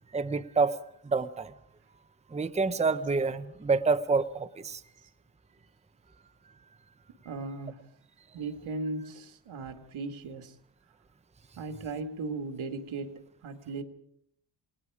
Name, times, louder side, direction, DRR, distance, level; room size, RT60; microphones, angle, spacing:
voice 1, 0.1-1.5 2.3-4.8, right 4 dB, 15° right, 11 dB, 0.7 m, -28 dB
voice 2, 7.3-7.8 8.3-10.5 11.6-13.8, right 3 dB, 90° right, 6 dB, 2.1 m, -37 dB
28.0 x 20.0 x 4.9 m, 0.73 s
wide cardioid pair, 135°, 47 cm